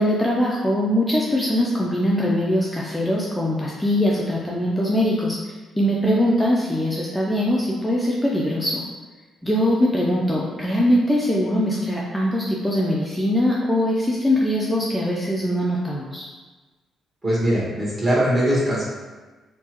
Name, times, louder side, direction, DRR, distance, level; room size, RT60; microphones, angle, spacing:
voice 1, 0.0-5.4 5.8-8.8 9.4-16.3, equal, 10° left, -4 dB, 0.4 m, -22 dB
voice 2, 17.2-18.8, equal, 25° right, -7 dB, 1.3 m, -21 dB
3.3 x 2.1 x 2.9 m, 1.3 s
cardioid pair, 90°, 0 cm